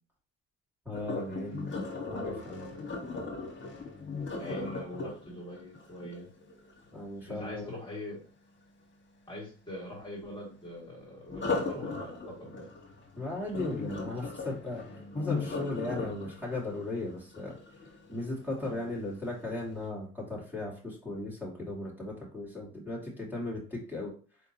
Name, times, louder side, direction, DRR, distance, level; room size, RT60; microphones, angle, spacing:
voice 1, 0.8-1.8 2.1-2.8 4.5-4.6 6.9-7.7 13.2-14.8 15.1-17.5 18.1-24.1, left 2 dB, 5° right, -6 dB, 2.4 m, -37 dB
Sink (filling or washing), 0.9-6.9 11.3-18.3 18.8-19.1 19.6-19.7, left 3 dB, 40° left, 1.6 m, -37 dB
voice 2, 4.3-6.3 7.3-8.2 9.3-12.7 18.6-18.9, left 1 dB, 15° left, -4 dB, 2.2 m, -43 dB
4.7 x 3.6 x 2.9 m, 0.38 s
cardioid pair, 90°, 30 cm